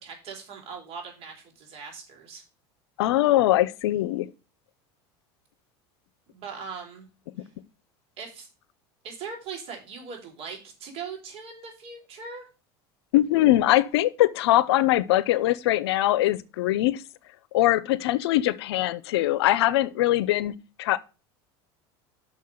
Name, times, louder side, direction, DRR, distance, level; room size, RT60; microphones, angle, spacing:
voice 1, 0.0-2.4 6.3-7.1 7.4-7.5 8.2-8.5 9.0-12.5, right 5 dB, 50° right, 4.0 m, -40 dB
voice 2, 3.0-4.3 13.1-17.0 17.5-20.5 20.8-21.0, left 15 dB, 85° left, 0.6 m, -22 dB
6.2 x 5.6 x 6.4 m
supercardioid pair, 115°, 13 cm